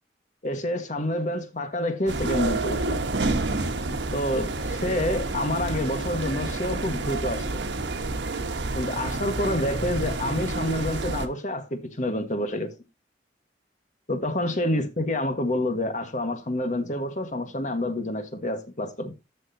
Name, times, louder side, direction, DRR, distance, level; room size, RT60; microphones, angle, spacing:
voice 1, 0.4-3.0 4.1-7.6 8.7-12.7 14.1-19.1, left 1 dB, 45° left, 1.5 m, -28 dB
sound 1, 2.1-11.3, right 2 dB, 90° right, 1.2 m, -29 dB
13.5 x 6.2 x 2.8 m
head